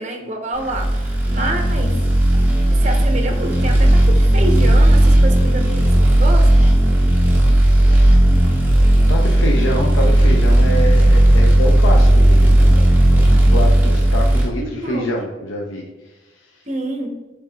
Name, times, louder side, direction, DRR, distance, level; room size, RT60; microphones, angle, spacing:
voice 1, 0.0-1.9 2.8-6.7 14.5-15.1 16.7-17.1, right 1 dB, 35° right, 4 dB, 0.7 m, -27 dB
sound 1, 0.7-14.5, right 1 dB, 10° right, 0.9 m, -13 dB
voice 2, 9.1-12.8 13.1-15.8, left 1 dB, 80° left, 0 dB, 0.6 m, -25 dB
6.7 x 3.4 x 2.3 m, 1.2 s
head